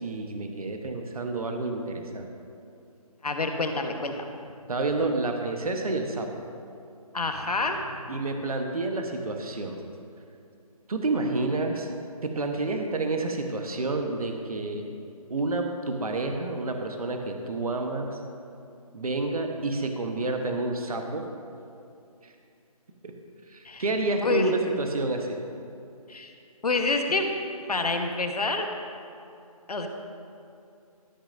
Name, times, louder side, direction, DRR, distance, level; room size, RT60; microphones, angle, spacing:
voice 1, 0.0-2.3 4.7-6.3 8.1-9.8 10.9-11.9 12.2-14.8 15.3-18.2 18.9-21.2 22.2-22.3 23.5-25.4, right 2 dB, 70° right, 3 dB, 1.1 m, -29 dB
voice 2, 3.2-4.3 7.1-8.1 23.6-23.8 24.2-24.5 26.1-26.3 26.6-27.3 27.7-28.7 29.7-29.9, left 3 dB, 80° left, 4 dB, 1.2 m, -27 dB
13.0 x 10.5 x 2.6 m, 2.6 s
figure-of-eight pair, 165°, 19 cm